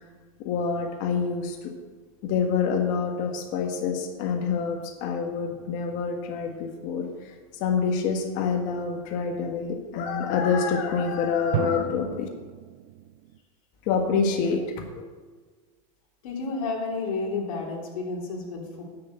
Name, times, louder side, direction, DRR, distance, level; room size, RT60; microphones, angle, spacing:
voice 1, 0.4-1.7 2.2-7.1 7.6-12.3 13.9-14.6, left 6 dB, 45° left, 3 dB, 1.5 m, -26 dB
sound 1, 5.5-6.8 11.5-13.4, right 12 dB, 55° right, 0.6 m, -35 dB
voice 2, 16.2-18.8, left 3 dB, 75° left, -1 dB, 3.4 m, -31 dB
10.5 x 6.6 x 8.0 m, 1.5 s
supercardioid pair, 150°, 18 cm